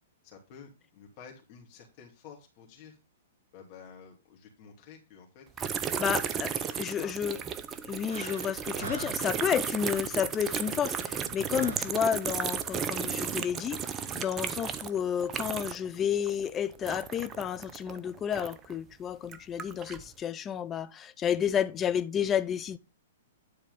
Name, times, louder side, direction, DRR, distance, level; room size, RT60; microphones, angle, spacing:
voice 1, 0.2-3.0 3.5-6.2 6.5-7.2, left 7 dB, 40° left, 2.5 m, -51 dB
sound 1, 5.6-18.7 19.2-20.1, right 7 dB, 25° right, 0.7 m, -34 dB
voice 2, 6.0-6.5 6.8-7.4 7.8-13.8 14.1-22.8, left 8 dB, 20° left, 0.6 m, -31 dB
sound 2, 7.1-12.3, right 4 dB, 50° right, 4.7 m, -45 dB
10.0 x 4.3 x 5.3 m
figure-of-eight pair, 115°, 0 cm